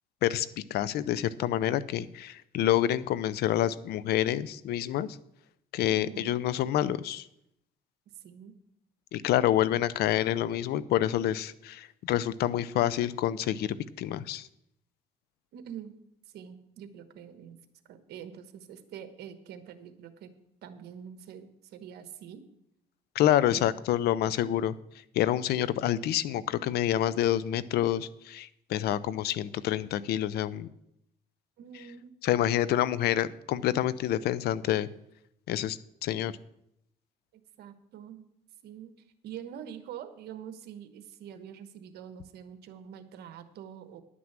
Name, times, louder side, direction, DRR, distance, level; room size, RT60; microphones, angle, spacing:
voice 1, 0.2-5.2 5.7-7.3 9.1-14.5 23.2-24.8 25.1-30.7 32.2-34.9 35.5-36.3, left 12 dB, 70° left, 17 dB, 0.5 m, -27 dB
voice 2, 5.9-6.3 8.2-8.5 15.5-15.9 16.3-17.6 17.9-20.3 20.6-22.4 23.5-23.7 31.6-32.1 37.3-38.3 38.6-38.9 39.2-44.0, right 9 dB, 70° right, 9 dB, 1.2 m, -45 dB
11.0 x 6.1 x 7.4 m, 0.78 s
cardioid pair, 110°, 17 cm